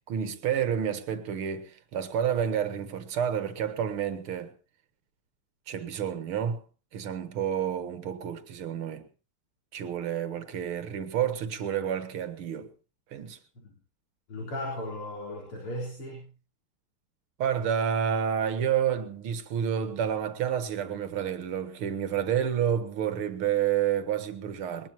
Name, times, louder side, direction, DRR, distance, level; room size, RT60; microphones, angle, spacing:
voice 1, 0.1-4.5 5.7-6.6 6.9-9.1 9.7-12.7 13.1-13.4 17.4-24.9, right 9 dB, 80° right, 2.2 m, -29 dB
voice 2, 14.3-16.3, left 1 dB, 90° left, 4.9 m, -36 dB
21.5 x 20.0 x 2.9 m
omnidirectional pair, 2.3 m